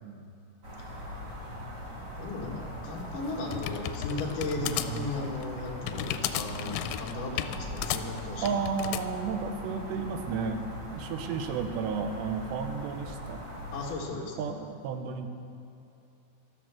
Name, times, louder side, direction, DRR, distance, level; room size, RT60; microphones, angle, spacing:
sound 1, 0.6-13.9, equal, 35° right, 2.0 m, -40 dB
voice 1, 2.2-8.6 13.7-14.4, left 2 dB, 55° left, -1 dB, 3.0 m, -36 dB
sound 2, 2.9-9.1, left 12 dB, 90° left, 2.9 m, -34 dB
voice 2, 4.6-5.1 8.4-10.7 10.9-13.4 14.4-15.3, right 5 dB, 85° right, 7 dB, 3.1 m, -33 dB
13.5 x 13.0 x 5.9 m, 2.8 s
omnidirectional pair, 4.9 m